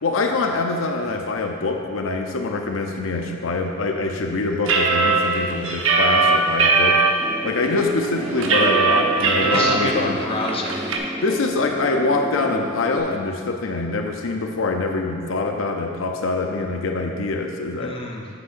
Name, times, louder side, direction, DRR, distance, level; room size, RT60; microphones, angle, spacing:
voice 1, 0.0-7.0 7.4-10.2 11.2-18.0, left 3 dB, 80° left, 3 dB, 0.6 m, -24 dB
sound 1, 4.7-7.1 7.6-7.7 8.0-9.7 10.1-10.2 10.5-11.0, right 4 dB, 85° right, 0.8 m, -18 dB
sound 2, 7.2-13.0, right 1 dB, 20° right, 0.4 m, -32 dB
voice 2, 9.4-11.0 17.8-18.3, left 2 dB, 30° left, -1 dB, 0.8 m, -28 dB
8.3 x 8.0 x 2.6 m, 2.1 s
head